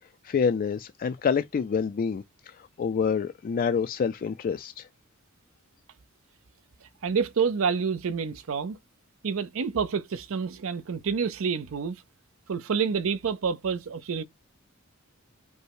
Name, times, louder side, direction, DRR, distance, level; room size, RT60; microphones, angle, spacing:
voice 1, 0.2-4.9, left 6 dB, 40° left, 0.3 m, -27 dB
voice 2, 7.0-8.8 9.2-12.0 12.5-14.2, right 6 dB, 70° right, 0.5 m, -28 dB
5.2 x 2.1 x 4.6 m
head